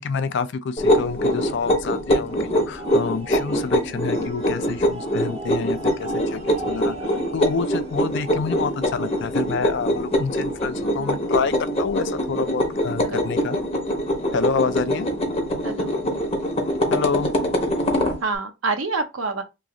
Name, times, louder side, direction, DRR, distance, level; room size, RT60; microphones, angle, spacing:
voice 1, 0.0-6.4 6.7-13.6 14.3-15.1 16.9-17.3, left 5 dB, 60° left, 0.4 m, -28 dB
sound 1, 0.8-18.2, equal, 30° left, 0.8 m, -24 dB
sound 2, 2.3-10.6, right 2 dB, 35° right, 0.6 m, -42 dB
voice 2, 10.8-11.2 13.0-13.3 15.6-15.9 18.2-19.4, right 3 dB, 80° right, 0.6 m, -27 dB
3.0 x 2.4 x 3.7 m
head